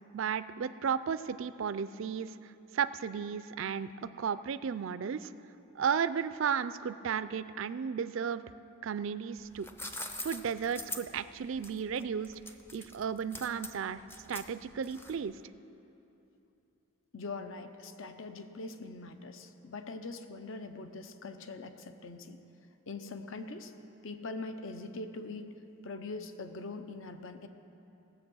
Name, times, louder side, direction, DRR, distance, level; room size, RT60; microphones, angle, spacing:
voice 1, 0.1-5.3 5.8-8.4 8.8-9.7 10.2-12.3 12.7-14.0 14.3-15.4, right 7 dB, 60° right, 14 dB, 0.4 m, -34 dB
sound 1, 9.4-15.4, left 2 dB, 10° left, 0.5 m, -43 dB
voice 2, 17.1-22.4 22.9-23.7 24.0-25.6 25.8-27.5, left 3 dB, 65° left, 8 dB, 0.7 m, -42 dB
17.5 x 7.8 x 6.2 m, 2.9 s
head